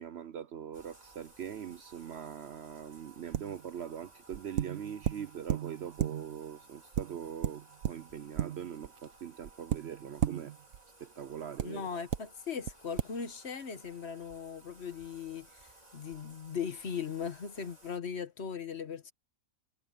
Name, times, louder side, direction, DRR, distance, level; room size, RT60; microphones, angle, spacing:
voice 1, 0.0-10.5 11.0-11.9, right 9 dB, 60° right, 0.8 m, -42 dB
Bathtub (filling or washing), 0.7-18.0, right 3 dB, 30° right, 3.6 m, -58 dB
sound 1, 3.3-3.7 4.3-6.5 6.9-9.0 9.4-10.8 11.6-11.7 12.1-12.2 12.7-12.8 13.0-13.1, right 11 dB, 75° right, 1.2 m, -34 dB
voice 2, 11.6-19.1, left 6 dB, 50° left, 1.4 m, -39 dB
omnidirectional pair, 1.5 m